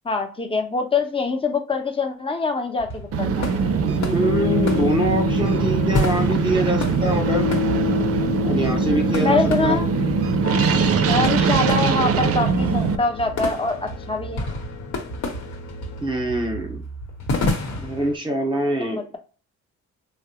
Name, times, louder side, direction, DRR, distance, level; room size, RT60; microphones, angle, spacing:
voice 1, 0.0-3.5 9.2-9.9 11.0-14.5 18.8-19.2, left 3 dB, 20° left, 4 dB, 0.7 m, -24 dB
sound 1, 2.8-18.2, left 1 dB, 65° left, 1.1 m, -31 dB
sound 2, 3.1-13.0, right 6 dB, 50° right, 0.5 m, -22 dB
sound 3, 3.5-16.1, left 10 dB, 40° left, 0.4 m, -31 dB
voice 2, 3.9-7.5 8.4-9.8 16.0-16.8 17.8-19.2, right 1 dB, 15° right, 3 dB, 1.0 m, -24 dB
3.4 x 2.1 x 2.9 m, 0.37 s
cardioid pair, 90°, 30 cm